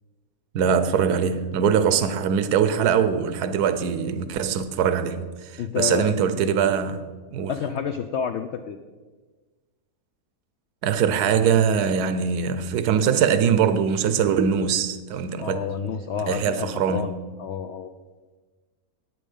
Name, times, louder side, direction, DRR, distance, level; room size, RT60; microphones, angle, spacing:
voice 1, 0.5-7.0 7.3-7.5 10.8-15.7 16.3-17.1, right 7 dB, 85° right, 1.3 m, -22 dB
voice 2, 5.6-6.2 7.5-8.8 15.4-17.9, left 7 dB, 70° left, 0.6 m, -29 dB
11.0 x 8.7 x 5.4 m
omnidirectional pair, 1.6 m